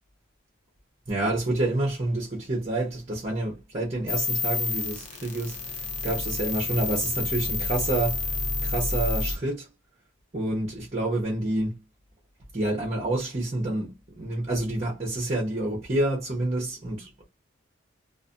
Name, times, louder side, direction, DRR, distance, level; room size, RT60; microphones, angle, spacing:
voice 1, 1.1-9.7 10.3-11.8 12.5-17.3, right 2 dB, 30° right, 0.8 m, -28 dB
sound 1, 4.1-9.4, left 3 dB, 35° left, 0.6 m, -29 dB
2.4 x 2.4 x 2.4 m
head